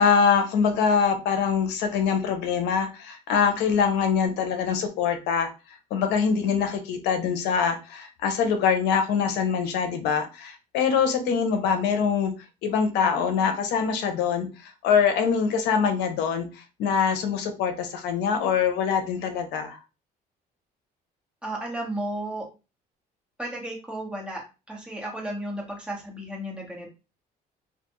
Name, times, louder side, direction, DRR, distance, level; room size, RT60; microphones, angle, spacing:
voice 1, 0.0-5.5 5.9-12.3 12.6-19.8, left 6 dB, 85° left, 6 dB, 0.6 m, -24 dB
voice 2, 21.4-22.4 23.4-24.4 24.7-26.9, right 1 dB, 5° right, -3 dB, 1.1 m, -33 dB
2.4 x 2.2 x 2.9 m, 0.30 s
cardioid pair, 110°, 17 cm